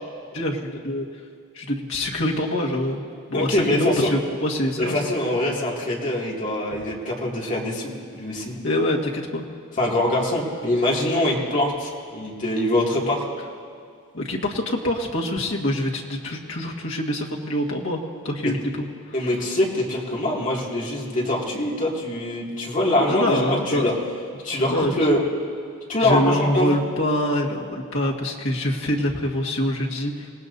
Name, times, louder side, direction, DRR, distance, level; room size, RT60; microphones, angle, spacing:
voice 1, 0.3-1.0 1.5-3.0 3.3-5.1 8.6-9.4 14.1-18.6 23.0-23.9 24.7-24.9 26.0-30.3, left 1 dB, 60° left, -2 dB, 1.7 m, -25 dB
voice 2, 3.3-4.1 4.8-8.5 9.8-13.2 18.4-18.5 19.1-23.9 24.4-25.3 25.9-26.9, left 1 dB, 35° left, -4 dB, 2.4 m, -23 dB
26.5 x 18.0 x 2.7 m, 2.3 s
head